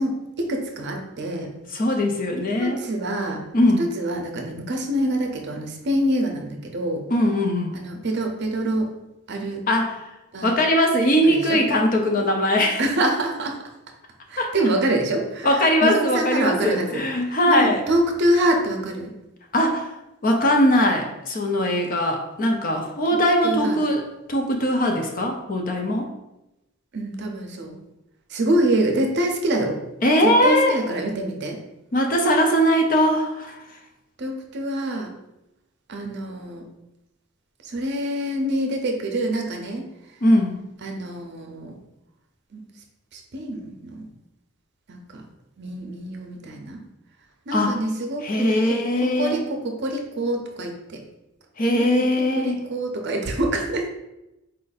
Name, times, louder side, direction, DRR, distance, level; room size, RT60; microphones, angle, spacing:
voice 1, 0.0-1.5 2.6-3.4 3.8-7.0 7.7-8.9 9.3-9.6 10.3-10.5 11.2-11.6 12.8-13.6 14.3-15.5 15.8-17.0 17.5-19.1 23.4-23.8 26.9-27.7 28.3-29.8 30.2-31.6 34.2-35.1 35.9-36.6 37.6-39.8 40.8-41.7 42.5-42.6 43.1-44.1 44.9-45.2 45.6-46.8 47.5-51.0 52.4-53.9, right 1 dB, 50° right, 2 dB, 0.6 m, -25 dB
voice 2, 1.7-2.8 3.5-3.9 7.1-7.7 9.7-10.0 10.4-12.8 14.4-14.5 15.4-17.8 19.5-19.9 20.2-26.1 30.0-30.8 31.9-33.6 40.2-40.6 47.5-47.8 48.2-49.4 51.6-52.6, left 1 dB, 40° left, 3 dB, 0.6 m, -20 dB
4.4 x 2.6 x 4.0 m, 0.93 s
head